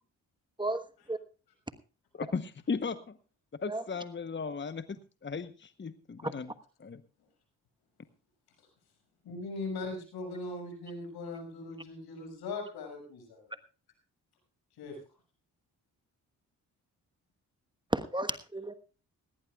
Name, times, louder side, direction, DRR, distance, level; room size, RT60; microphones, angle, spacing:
voice 1, 2.1-3.2 3.6-6.5 6.8-7.0, left 5 dB, 30° left, 12 dB, 1.0 m, -36 dB
voice 2, 9.2-13.5 14.8-15.0, left 3 dB, 85° left, 3 dB, 6.5 m, -39 dB
voice 3, 17.9-18.7, right 1 dB, 10° right, 11 dB, 1.3 m, -32 dB
17.5 x 17.5 x 2.4 m, 0.35 s
supercardioid pair, 55°, 37 cm